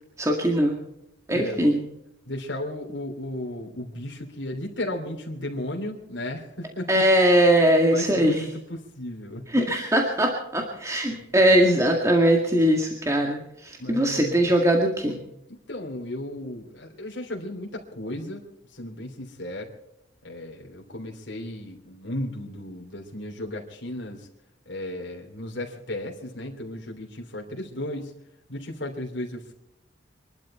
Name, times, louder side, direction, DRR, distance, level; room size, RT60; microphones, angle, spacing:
voice 1, 0.2-0.8 1.3-1.8 6.9-8.3 9.5-15.2, right 1 dB, 15° right, 1 dB, 2.0 m, -21 dB
voice 2, 1.3-1.6 2.2-7.0 7.9-9.6 11.1-11.4 13.8-14.5 15.5-18.4 18.7-19.7 20.2-24.3 24.6-28.2 28.5-29.5, left 1 dB, 70° left, 0 dB, 3.2 m, -35 dB
25.0 x 12.0 x 4.4 m, 0.80 s
head